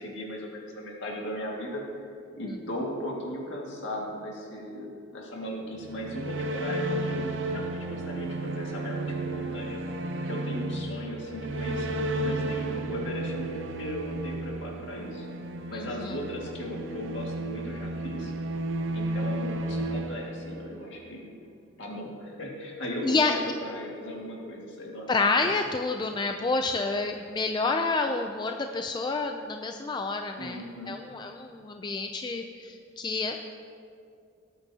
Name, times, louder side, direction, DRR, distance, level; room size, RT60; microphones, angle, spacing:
voice 1, 0.0-1.8 2.4-9.8 10.2-15.3 15.7-18.3 18.9-21.3 21.8-25.1 30.4-31.0, left 1 dB, 65° left, -1 dB, 2.0 m, -37 dB
sound 1, 5.7-21.0, right 2 dB, 65° right, 0.7 m, -33 dB
voice 2, 15.7-16.2 23.0-23.5 25.1-33.4, left 3 dB, 20° left, 5 dB, 0.4 m, -29 dB
18.5 x 8.8 x 2.8 m, 2.4 s
head